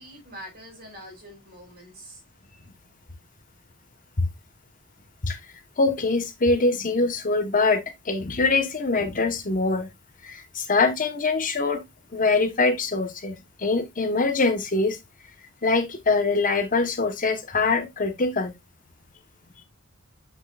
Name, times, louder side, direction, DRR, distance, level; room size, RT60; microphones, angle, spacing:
voice 1, 0.0-2.2, equal, 45° right, 5.2 m, -44 dB
voice 2, 5.8-9.9 10.2-11.8 12.1-15.0 15.6-18.5, left 3 dB, 40° left, 1.1 m, -23 dB
8.0 x 5.9 x 2.3 m
head